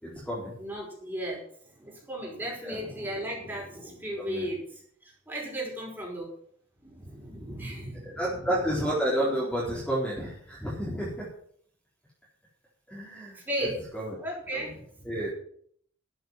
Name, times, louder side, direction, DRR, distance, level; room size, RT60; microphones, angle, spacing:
voice 1, 0.0-0.5 2.6-2.8 4.2-4.5 8.0-11.3 12.9-13.7 13.9-14.2 14.5-14.8 15.0-15.3, right 1 dB, 5° left, -7 dB, 4.0 m, -31 dB
voice 2, 0.6-6.3 6.8-8.4 13.4-13.8 14.2-15.1, right 1 dB, 10° right, -2 dB, 5.3 m, -36 dB
12.5 x 7.9 x 7.6 m, 0.63 s
head